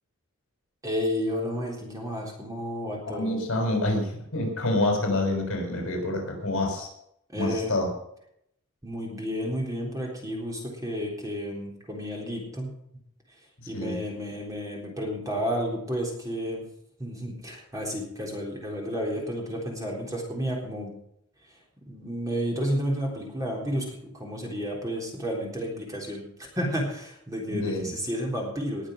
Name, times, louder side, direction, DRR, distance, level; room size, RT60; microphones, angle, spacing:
voice 1, 0.8-3.4 7.3-7.8 8.8-12.7 13.7-16.6 17.0-20.9 21.8-28.9, equal, 15° right, -1 dB, 3.7 m, -31 dB
voice 2, 3.1-6.9 7.4-7.9 13.7-14.0 27.5-27.9, left 1 dB, 60° left, 2 dB, 5.9 m, -27 dB
20.0 x 7.3 x 6.5 m, 0.73 s
head